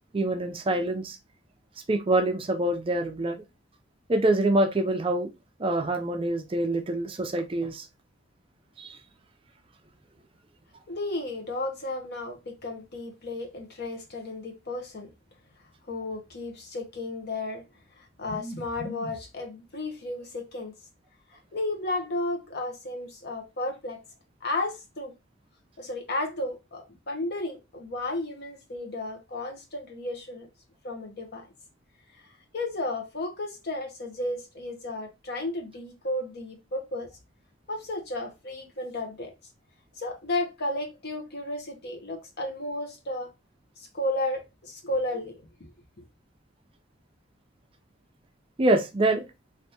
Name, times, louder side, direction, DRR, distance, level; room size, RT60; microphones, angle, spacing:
voice 1, 0.1-1.2 1.9-3.4 4.1-5.3 5.6-7.9 8.8-9.0 48.6-49.3, right 1 dB, 30° right, 0.4 m, -25 dB
voice 2, 10.9-15.1 15.9-17.6 18.0-20.7 21.3-24.0 24.4-25.1 25.8-30.5 30.8-31.5 32.5-37.1 37.7-39.3 40.0-43.3 43.8-45.4, left 2 dB, 55° left, 0.9 m, -33 dB
3.4 x 2.6 x 2.8 m
head